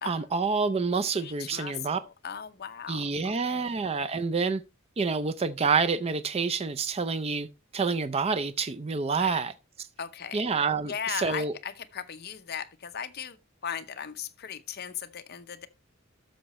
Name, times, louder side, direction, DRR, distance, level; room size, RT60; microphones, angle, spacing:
voice 1, 0.1-2.0 2.9-4.6 5.0-7.5 7.7-9.5 10.3-11.5, right 4 dB, 30° right, 0.4 m, -28 dB
voice 2, 1.2-3.8 9.2-9.4 10.0-10.5 10.9-13.4 13.6-15.7, left 8 dB, 50° left, 0.7 m, -38 dB
12.5 x 6.4 x 3.0 m
head